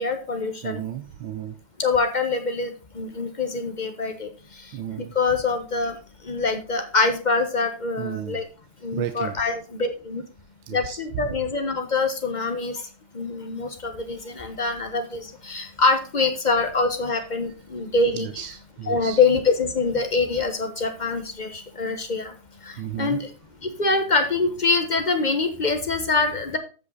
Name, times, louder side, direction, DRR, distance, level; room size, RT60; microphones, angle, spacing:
voice 1, 0.0-0.8 1.8-4.3 5.0-6.0 6.3-8.4 8.8-10.2 10.7-12.8 13.1-18.4 18.9-22.3 22.7-23.3 23.8-26.6, left 3 dB, 25° left, 5 dB, 1.0 m, -24 dB
voice 2, 0.6-1.6 4.7-5.1 8.0-8.4 8.9-9.4 10.7-11.0 18.1-19.2 22.8-23.2, right 10 dB, 75° right, 8 dB, 1.5 m, -33 dB
14.5 x 5.4 x 4.0 m, 0.35 s
omnidirectional pair, 2.3 m